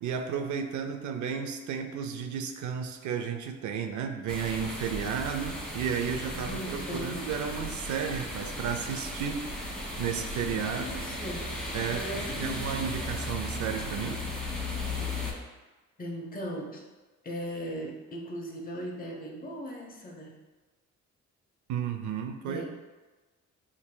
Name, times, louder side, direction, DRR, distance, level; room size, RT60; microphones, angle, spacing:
voice 1, 0.0-9.5 10.0-10.9 11.7-14.3 21.7-22.7, right 7 dB, 75° right, 6 dB, 0.5 m, -33 dB
sound 1, 4.3-15.3, left 1 dB, 5° left, 1.2 m, -36 dB
voice 2, 6.3-7.3 10.7-11.6 11.9-12.7 16.0-16.8 17.2-20.4 22.5-22.7, equal, 30° left, -1 dB, 0.9 m, -38 dB
7.1 x 2.8 x 2.2 m, 1.2 s
cardioid pair, 90°, 30 cm